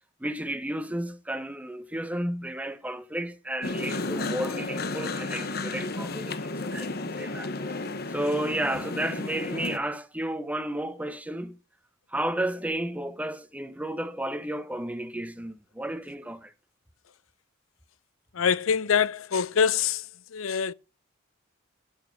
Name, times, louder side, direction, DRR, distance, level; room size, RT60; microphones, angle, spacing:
voice 1, 0.2-7.8 8.1-11.6 12.1-16.5, right 1 dB, 5° right, 0.8 m, -32 dB
sound 1, 3.6-9.8, left 3 dB, 50° left, 1.0 m, -33 dB
voice 2, 18.3-20.1 20.3-20.7, left 7 dB, 85° left, 0.5 m, -24 dB
12.0 x 6.3 x 6.6 m
head